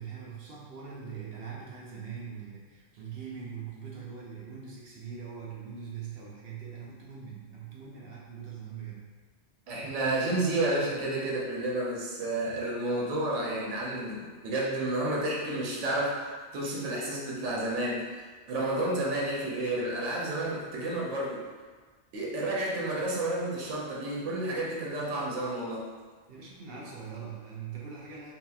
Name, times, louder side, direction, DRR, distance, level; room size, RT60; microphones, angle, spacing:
voice 1, 0.0-9.1 26.3-28.3, right 6 dB, 60° right, -4 dB, 0.7 m, -42 dB
voice 2, 9.7-18.2 18.5-21.4 22.1-25.8, right 1 dB, 85° right, -3 dB, 1.0 m, -31 dB
2.9 x 2.8 x 2.3 m, 1.4 s
omnidirectional pair, 1.2 m